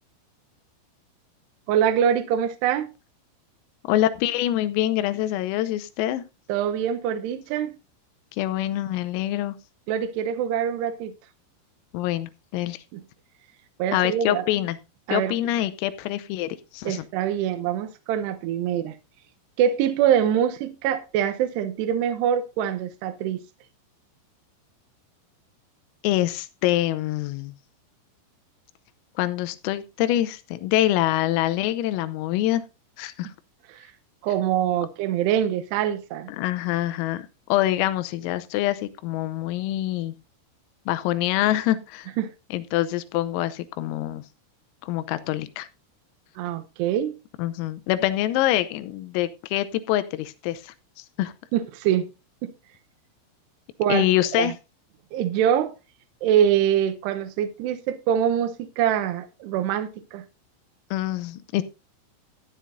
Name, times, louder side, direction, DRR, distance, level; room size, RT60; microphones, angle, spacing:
voice 1, 1.7-2.9 6.5-7.7 9.9-11.1 12.9-13.0 13.8-14.4 15.1-15.3 16.8-18.9 19.6-23.4 33.7-33.9 34.2-36.3 42.2-42.3 46.4-47.1 51.5-52.1 52.4-52.5 53.8-54.0 54.4-54.5 55.1-55.7 56.2-60.2, right 9 dB, 75° right, 2.5 m, -24 dB
voice 2, 3.9-6.2 8.3-9.6 11.9-12.8 13.9-14.8 15.1-17.1 26.0-27.6 29.2-32.6 33.0-33.3 36.3-40.1 40.9-42.1 42.5-44.2 44.8-45.7 47.4-51.3 53.9-54.5 60.9-61.6, left 14 dB, 90° left, 3.5 m, -25 dB
14.0 x 10.0 x 2.6 m
omnidirectional pair, 5.9 m